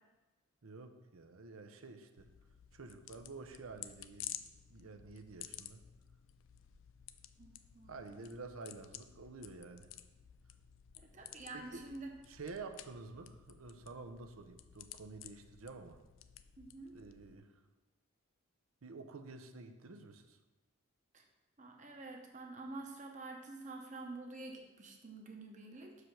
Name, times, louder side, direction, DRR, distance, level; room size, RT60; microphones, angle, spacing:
voice 1, 0.6-2.3 2.7-4.4 4.7-5.8 7.9-9.9 11.5-11.8 12.2-16.0 16.9-17.6 18.8-20.4, right 3 dB, 85° right, 7 dB, 0.7 m, -50 dB
sound 1, 2.2-17.4, left 12 dB, 65° left, 0.4 m, -53 dB
voice 2, 7.4-7.9 11.0-12.1 16.6-17.0 21.1-21.2 21.6-26.0, right 2 dB, 35° right, 2 dB, 0.9 m, -48 dB
6.3 x 5.0 x 5.7 m, 1.1 s
head